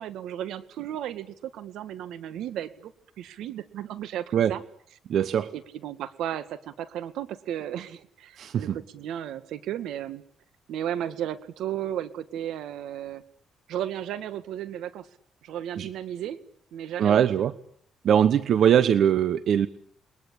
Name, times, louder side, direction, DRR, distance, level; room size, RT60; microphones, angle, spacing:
voice 1, 0.0-2.9 3.2-4.6 5.5-10.2 10.7-13.2 13.7-15.1 15.4-16.4 16.7-17.4 18.6-18.9, right 11 dB, 80° right, 13 dB, 2.0 m, -34 dB
voice 2, 5.1-5.5 8.4-8.8 15.8-15.9 17.0-17.5 18.0-19.7, right 9 dB, 65° right, 14 dB, 1.1 m, -21 dB
29.5 x 22.0 x 8.7 m, 0.64 s
cardioid pair, 90°, 0 cm